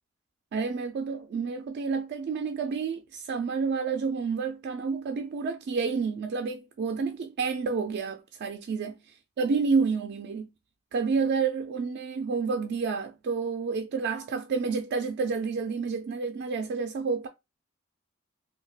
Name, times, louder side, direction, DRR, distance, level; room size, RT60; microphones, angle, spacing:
voice 1, 0.5-9.0 9.4-10.5 10.9-17.3, right 5 dB, 55° right, 0.3 m, -29 dB
3.3 x 2.2 x 2.3 m
head